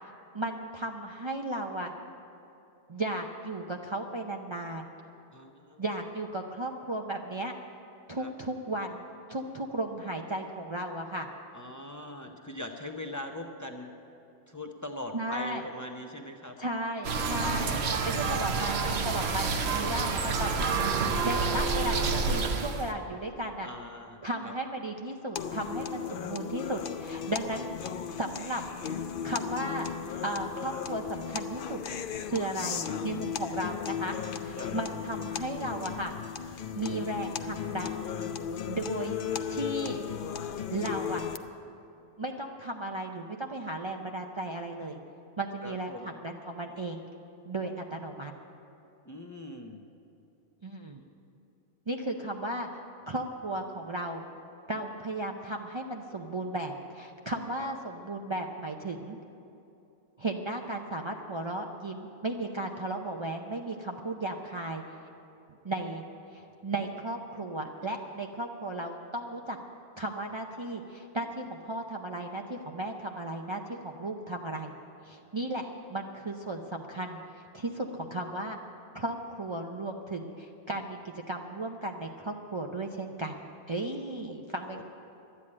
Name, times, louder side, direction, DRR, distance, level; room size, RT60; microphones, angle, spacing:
voice 1, 0.3-1.9 2.9-4.9 5.8-7.5 8.1-11.3 12.3-12.4 15.1-15.6 16.6-20.5 21.2-23.7 24.2-27.7 28.1-28.6 29.0-29.9 30.2-31.8 32.3-34.2 34.4-36.1 36.8-38.1 38.7-39.2 39.5-40.0 40.7-41.2 42.2-45.0 45.4-47.0 47.5-48.3 50.6-51.0 51.9-52.7 53.1-54.2 54.7-59.2 60.2-64.8 65.6-66.0 66.3-69.6 70.0-74.7 75.0-75.6 75.9-77.2 77.5-78.6 78.9-83.4 83.7-84.8, right 1 dB, 30° right, 1 dB, 0.6 m, -35 dB
voice 2, 5.3-5.8 8.2-8.3 11.5-13.9 14.5-16.5 20.8-21.2 23.6-24.5 27.4-27.7 28.4-28.5 32.6-32.8 34.6-34.7 45.6-46.1 49.0-49.8 57.6-57.7 84.3-84.4 84.7-84.8, left 1 dB, 20° left, 2 dB, 0.8 m, -41 dB
sound 1, 17.0-22.9, right 4 dB, 85° right, 1.2 m, -28 dB
sound 2, 25.4-41.4, left 8 dB, 60° left, 0.7 m, -36 dB
12.5 x 9.9 x 8.6 m, 2.8 s
omnidirectional pair, 1.0 m